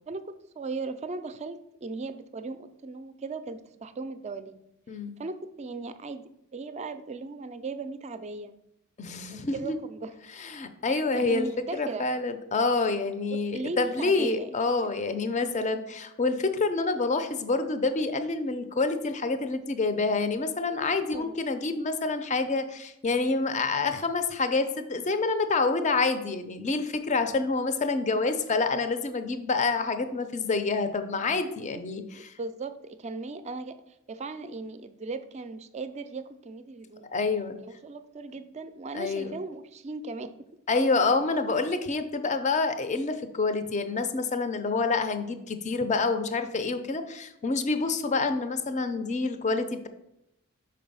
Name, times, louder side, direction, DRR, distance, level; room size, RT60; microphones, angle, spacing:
voice 1, 0.1-4.6 5.2-8.5 9.3-10.1 10.9-12.1 13.3-14.6 21.1-21.4 27.1-27.2 31.7-31.8 32.1-37.1 37.7-40.5, right 3 dB, 30° right, 11 dB, 0.4 m, -37 dB
voice 2, 9.0-9.8 10.4-11.5 11.7-32.3 37.1-37.6 38.9-39.3 40.7-49.9, left 3 dB, 35° left, 9 dB, 0.5 m, -27 dB
5.5 x 4.3 x 5.4 m, 0.84 s
head